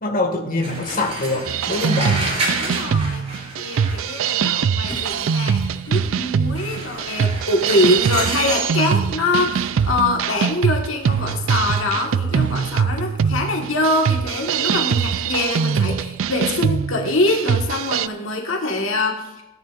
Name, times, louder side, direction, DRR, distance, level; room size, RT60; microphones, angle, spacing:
voice 1, 0.0-2.2, left 2 dB, 45° left, 1 dB, 1.9 m, -24 dB
sound 1, 0.6-4.4 6.5-8.8, right 2 dB, 35° right, 3.3 m, -29 dB
sound 2, 1.5-18.1, right 6 dB, 75° right, 0.4 m, -22 dB
voice 2, 2.6-3.2 3.6-5.6 5.9-19.4, left 2 dB, 75° left, 1 dB, 1.5 m, -23 dB
sound 3, 4.4-16.7, left 1 dB, 25° left, 1.8 m, -44 dB
17.5 x 10.5 x 2.5 m, 1.1 s
head